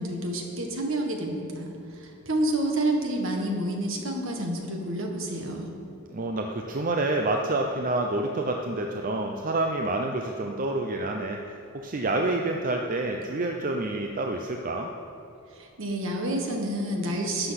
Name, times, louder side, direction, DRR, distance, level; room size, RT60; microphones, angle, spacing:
voice 1, 0.0-5.7 15.5-17.5, right 1 dB, 65° right, 2 dB, 1.6 m, -29 dB
voice 2, 6.1-11.4 11.7-14.9, right 2 dB, 40° right, 2 dB, 0.6 m, -28 dB
12.0 x 7.9 x 5.9 m, 2.8 s
head